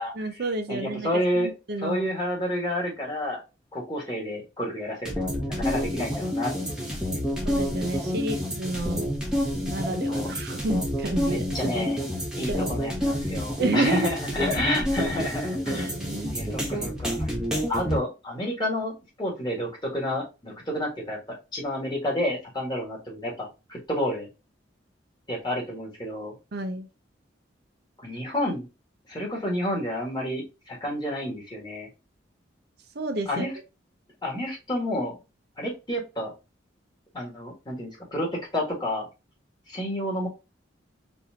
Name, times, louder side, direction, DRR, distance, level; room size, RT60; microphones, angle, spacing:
voice 1, 0.1-2.1 7.4-9.1 9.6-11.8 12.5-12.8 13.6-14.5 15.7-16.4 26.5-26.9 32.9-33.5, right 2 dB, 55° right, 6 dB, 0.6 m, -30 dB
voice 2, 0.7-1.5 1.8-3.4 3.7-7.2 10.1-10.3 11.3-12.0 12.4-15.9 16.3-17.3 17.7-18.9 19.2-24.3 25.3-26.4 28.0-28.7 29.1-31.9 33.3-33.5 34.2-35.1 35.6-36.3 37.1-39.1 39.7-40.3, left 1 dB, 25° left, -2 dB, 1.7 m, -30 dB
sound 1, 5.1-18.0, equal, 5° right, 1.0 m, -29 dB
4.3 x 2.6 x 2.8 m, 0.27 s
head